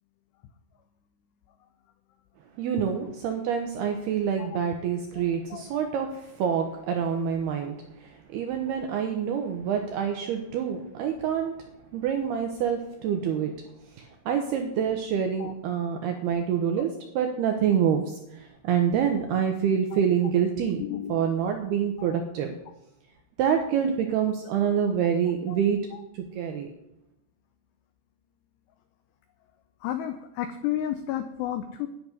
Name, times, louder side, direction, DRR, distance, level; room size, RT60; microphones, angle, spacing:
voice 1, 2.6-7.8 8.0-11.5 11.9-13.5 14.0-20.8 21.1-22.5 23.4-25.8 26.1-26.7, right 8 dB, 80° right, 4 dB, 2.3 m, -26 dB
voice 2, 5.1-5.6 15.4-15.5 20.8-21.4 22.0-22.2 25.5-25.6 25.9-26.0 29.8-31.9, left 11 dB, 85° left, 8 dB, 2.4 m, -32 dB
10.5 x 7.0 x 9.5 m, 0.85 s
omnidirectional pair, 5.8 m